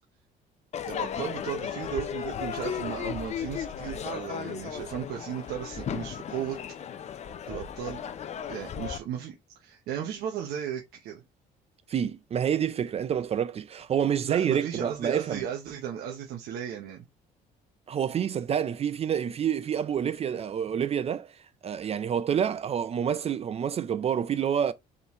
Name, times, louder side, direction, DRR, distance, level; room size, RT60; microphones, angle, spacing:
Crowd / Fireworks, 0.7-9.0, left 8 dB, 40° left, 0.5 m, -35 dB
voice 1, 0.8-6.6 7.5-8.0 8.5-11.2 14.2-17.0, right 9 dB, 75° right, 1.0 m, -35 dB
voice 2, 11.9-15.5 17.9-21.3 21.6-24.7, right 8 dB, 35° right, 0.4 m, -28 dB
4.0 x 3.8 x 3.0 m
cardioid pair, 110°, 17 cm